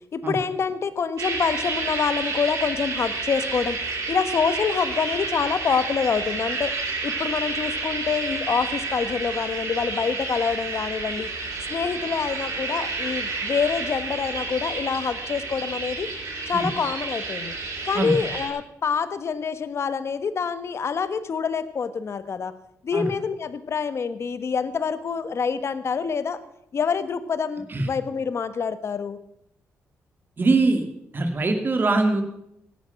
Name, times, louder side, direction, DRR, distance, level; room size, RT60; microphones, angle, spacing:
voice 1, 0.1-3.8 4.1-6.7 7.0-11.3 11.7-16.1 16.5-17.5 17.8-22.5 22.8-26.4 26.7-29.2, left 6 dB, 50° left, 13 dB, 1.3 m, -26 dB
sound 1, 1.2-18.5, right 3 dB, 70° right, 6.7 m, -30 dB
voice 2, 30.4-30.9 31.1-32.2, right 3 dB, 35° right, 6 dB, 2.6 m, -22 dB
16.5 x 11.5 x 5.9 m, 0.78 s
cardioid pair, 90°, 6 cm